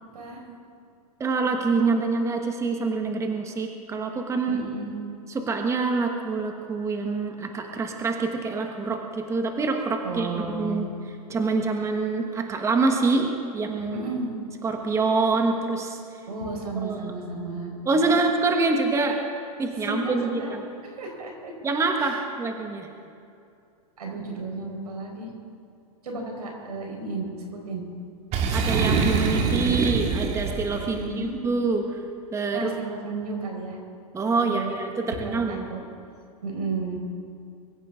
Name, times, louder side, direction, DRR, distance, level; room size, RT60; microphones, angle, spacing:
voice 1, 1.2-4.6 5.3-10.9 11.3-14.1 14.6-16.0 16.8-17.1 17.8-19.2 19.6-20.6 21.6-22.9 28.5-31.8 32.3-32.7 34.1-35.7, right 3 dB, 15° right, 3 dB, 1.3 m, -26 dB
voice 2, 4.5-4.9 10.0-10.8 13.9-14.3 16.3-18.1 19.8-20.5 21.0-21.5 22.0-22.1 24.0-25.3 26.0-27.8 30.9-31.3 32.5-33.8 34.4-34.7 35.1-35.8 36.4-37.0, right 3 dB, 85° right, 1 dB, 4.6 m, -33 dB
Boom, 28.3-31.0, right 4 dB, 35° right, 2.1 m, -24 dB
22.5 x 15.5 x 3.7 m, 2.5 s
hypercardioid pair, 125°, 19 cm